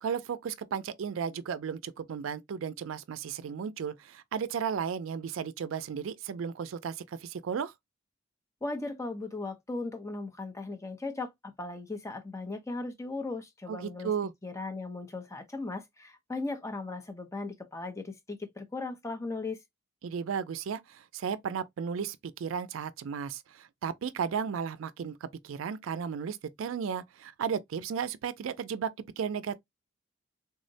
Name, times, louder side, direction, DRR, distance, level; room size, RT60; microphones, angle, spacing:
voice 1, 0.0-7.7 13.7-14.3 20.0-28.9 29.2-29.6, right 7 dB, 85° right, 0.4 m, -34 dB
voice 2, 8.6-14.1 14.4-19.6, left 3 dB, 15° left, 0.5 m, -37 dB
3.6 x 2.1 x 2.6 m
head